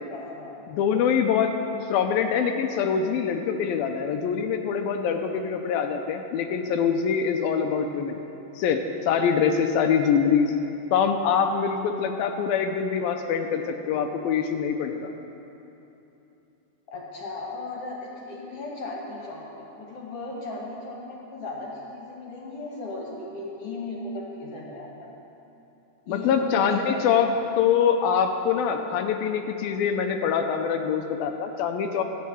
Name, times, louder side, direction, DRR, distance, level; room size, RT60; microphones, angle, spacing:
voice 1, 0.1-0.6 13.4-13.6 16.9-25.1 26.1-27.3, left 2 dB, 45° left, -3 dB, 2.4 m, -37 dB
voice 2, 0.7-1.5 1.9-8.2 8.6-10.5 10.9-15.1 26.1-27.3 27.6-32.0, left 7 dB, 80° left, 5 dB, 2.4 m, -24 dB
13.0 x 8.3 x 9.1 m, 2.9 s
omnidirectional pair, 4.4 m